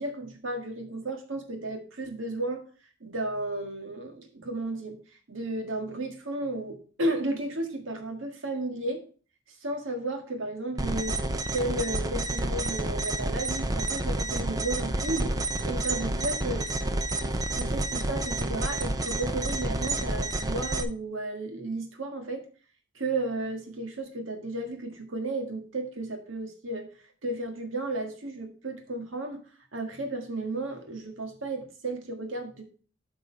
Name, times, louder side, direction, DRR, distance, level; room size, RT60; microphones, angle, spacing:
voice 1, 0.0-2.6 3.0-5.0 5.3-9.0 9.6-15.3 15.6-16.7 17.5-22.4 22.9-26.9 27.2-29.4 29.7-32.6, right 2 dB, 80° right, 4 dB, 1.7 m, -33 dB
sound 1, 10.8-20.8, right 2 dB, 20° right, 0.5 m, -29 dB
8.4 x 5.4 x 4.4 m, 0.40 s
head